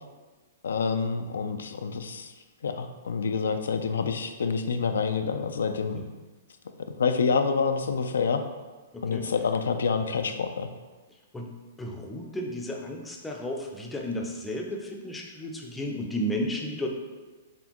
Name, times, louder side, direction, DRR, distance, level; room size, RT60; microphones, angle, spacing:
voice 1, 0.6-2.3 2.6-6.0 7.0-8.4 9.0-10.7, left 5 dB, 90° left, 7 dB, 0.3 m, -27 dB
voice 2, 8.9-9.3 11.3-11.5 11.8-16.9, equal, 5° left, 0 dB, 0.4 m, -33 dB
4.2 x 3.3 x 2.9 m, 1.3 s
hypercardioid pair, 150°, 0 cm